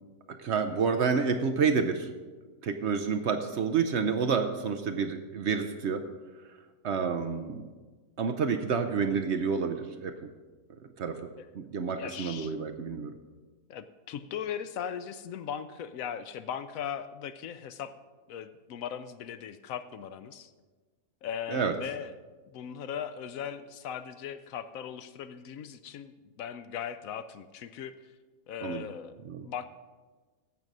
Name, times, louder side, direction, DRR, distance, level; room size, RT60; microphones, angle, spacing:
voice 1, 0.3-2.1 2.6-6.0 6.8-7.6 8.2-10.3 11.0-11.2 11.5-13.2 21.5-21.7 28.6-28.9 29.2-29.5, right 5 dB, 60° right, 7 dB, 0.8 m, -29 dB
voice 2, 12.0-12.5 13.7-17.9 18.3-20.5 21.2-22.1 22.5-27.9 28.5-29.1 29.4-29.8, left 8 dB, 70° left, 12 dB, 0.9 m, -38 dB
15.5 x 6.1 x 5.3 m, 1.4 s
omnidirectional pair, 1.6 m